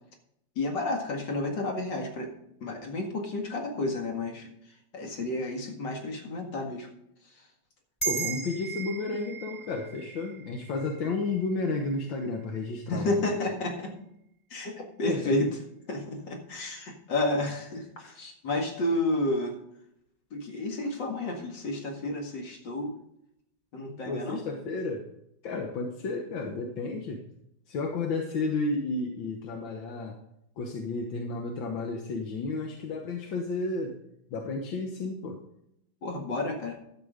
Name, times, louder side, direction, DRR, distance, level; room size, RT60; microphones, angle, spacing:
voice 1, 0.6-2.3 2.6-4.5 4.9-6.9 12.9-13.9 14.5-15.5 15.9-19.6 20.3-22.9 23.7-24.4 36.0-36.8, left 2 dB, 65° left, 2 dB, 2.7 m, -31 dB
sound 1, 8.0-12.7, right 7 dB, 10° left, 2.4 m, -38 dB
voice 2, 8.1-13.3 15.1-15.4 24.1-25.1 25.4-27.3 27.7-30.2 30.6-34.0 34.3-35.4, left 3 dB, 80° left, 2 dB, 2.0 m, -32 dB
12.0 x 7.7 x 5.1 m, 0.78 s
omnidirectional pair, 2.1 m